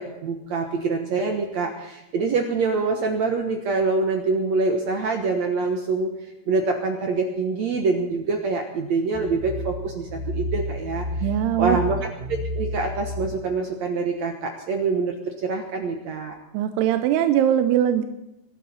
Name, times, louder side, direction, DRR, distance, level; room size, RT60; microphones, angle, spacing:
voice 1, 0.0-6.1 6.5-11.1 11.6-12.0 12.3-16.4, right 4 dB, 65° right, 3 dB, 1.8 m, -25 dB
sound 1, 9.1-13.3, equal, 10° right, 4.5 m, -31 dB
voice 2, 11.2-11.8 16.5-18.0, right 11 dB, 80° right, 8 dB, 2.7 m, -21 dB
23.0 x 12.5 x 4.2 m, 0.95 s
omnidirectional pair, 4.8 m